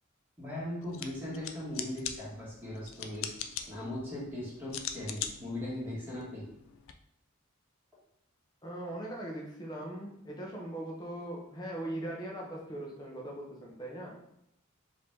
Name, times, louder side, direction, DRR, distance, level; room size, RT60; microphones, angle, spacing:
voice 1, 0.4-3.4 3.6-6.5, left 1 dB, 10° right, -7 dB, 1.8 m, -39 dB
sound 1, 0.8-6.9, left 8 dB, 65° left, 0.4 m, -42 dB
voice 2, 8.6-14.1, right 1 dB, 20° left, -3 dB, 0.8 m, -40 dB
4.8 x 2.8 x 3.6 m, 0.78 s
head